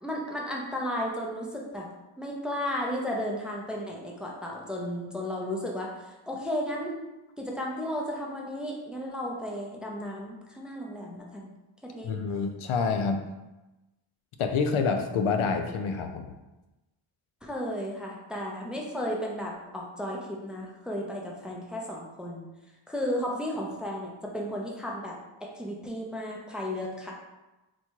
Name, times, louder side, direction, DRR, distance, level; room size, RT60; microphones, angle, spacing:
voice 1, 0.0-1.9 2.2-7.0 7.4-11.5 11.8-12.2 17.4-22.5 22.9-27.1, equal, ahead, -1 dB, 0.5 m, -34 dB
voice 2, 12.0-13.2 14.4-16.3, left 5 dB, 80° left, 5 dB, 0.6 m, -27 dB
4.2 x 2.3 x 4.5 m, 1.0 s
wide cardioid pair, 135°, 49 cm